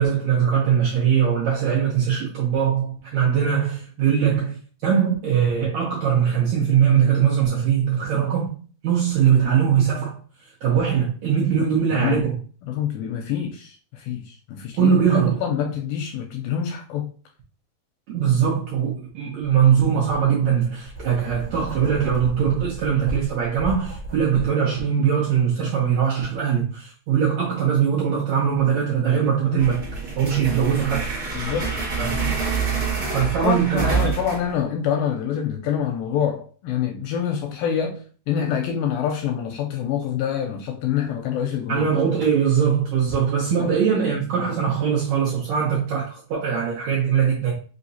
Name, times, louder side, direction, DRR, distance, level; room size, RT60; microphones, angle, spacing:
voice 1, 0.0-8.6 8.8-10.2 10.6-12.4 14.8-15.4 18.1-29.8 30.2-31.0 32.0-32.2 33.1-34.1 41.7-47.5, right 8 dB, 80° right, 1.6 m, -21 dB
voice 2, 11.9-12.2 12.7-15.0 15.4-17.1 29.5-29.7 31.3-31.7 32.0-32.4 33.4-41.9 43.6-43.7, left 8 dB, 80° left, 2.1 m, -26 dB
Writing, 19.4-19.6 20.1-24.5, right 1 dB, 20° right, 0.9 m, -34 dB
sound 1, 29.6-34.6, right 5 dB, 45° right, 1.1 m, -27 dB
5.6 x 2.9 x 2.7 m
omnidirectional pair, 4.5 m